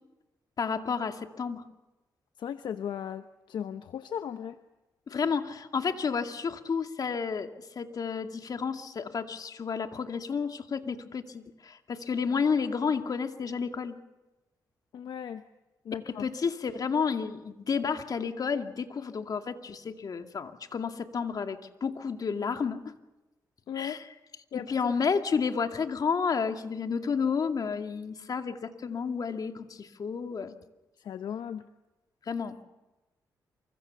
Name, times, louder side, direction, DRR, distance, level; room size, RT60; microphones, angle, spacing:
voice 1, 0.6-1.7 5.1-7.5 7.8-13.9 16.1-22.9 23.8-24.0 24.5-30.6 32.3-32.6, left 5 dB, 55° left, 6 dB, 2.4 m, -31 dB
voice 2, 2.4-4.6 14.9-15.4 15.8-16.3 23.7-24.0 24.5-24.9 31.0-31.7, left 9 dB, 75° left, 10 dB, 0.9 m, -37 dB
28.0 x 25.5 x 7.0 m, 1.1 s
cardioid pair, 65°, 8 cm